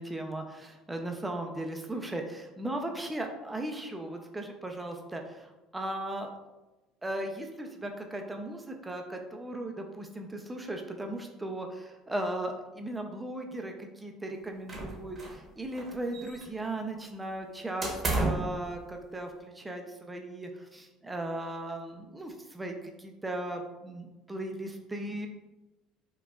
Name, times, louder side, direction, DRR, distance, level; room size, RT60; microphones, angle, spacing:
voice 1, 0.0-6.3 7.0-25.3, right 1 dB, 10° right, 3 dB, 0.4 m, -37 dB
sound 1, 14.7-15.5 15.7-16.7 17.8-18.5, right 2 dB, 25° right, 0.8 m, -32 dB
4.8 x 2.3 x 2.3 m, 1.0 s
supercardioid pair, 110°, 0 cm